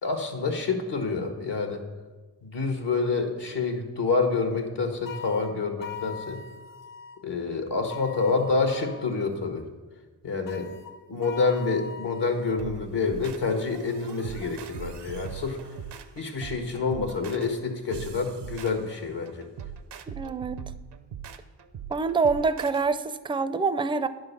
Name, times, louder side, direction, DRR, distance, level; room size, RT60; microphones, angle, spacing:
voice 1, 0.0-1.8 2.4-6.4 7.2-9.7 10.2-10.7 11.1-15.6 16.2-19.5, left 4 dB, 75° left, 5 dB, 1.3 m, -28 dB
sound 1, 5.1-7.2 7.9-9.2 10.5-12.6, left 6 dB, 50° left, 0.6 m, -42 dB
sound 2, 12.6-22.8, right 8 dB, 75° right, 0.7 m, -41 dB
voice 2, 20.1-20.6 21.9-24.1, right 4 dB, 15° right, 12 dB, 0.4 m, -26 dB
10.0 x 3.9 x 6.6 m, 1.3 s
cardioid pair, 45°, 42 cm